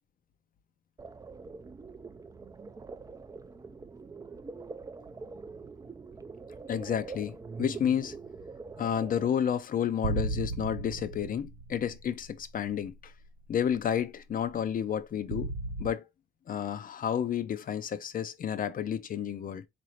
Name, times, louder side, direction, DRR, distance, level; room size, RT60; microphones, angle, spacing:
sound 1, 1.0-9.3, right 4 dB, 15° right, 0.3 m, -44 dB
voice 1, 6.7-8.2 8.8-13.1 13.5-15.5 15.8-16.0 16.5-19.6, left 9 dB, 45° left, 0.5 m, -31 dB
sound 2, 10.0-12.8 13.2-13.3 15.3-15.9, right 3 dB, 90° right, 0.6 m, -35 dB
3.9 x 2.6 x 3.1 m
cardioid pair, 90°, 20 cm